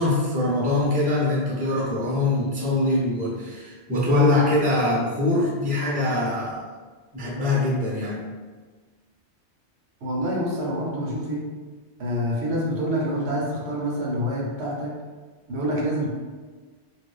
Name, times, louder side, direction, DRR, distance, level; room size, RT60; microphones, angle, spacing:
voice 1, 0.0-6.6 7.1-8.2, left 2 dB, 10° right, -6 dB, 0.6 m, -23 dB
voice 2, 10.0-11.4 12.0-14.9 15.5-16.1, equal, 70° right, -4 dB, 1.0 m, -26 dB
2.9 x 2.6 x 3.2 m, 1.4 s
omnidirectional pair, 1.2 m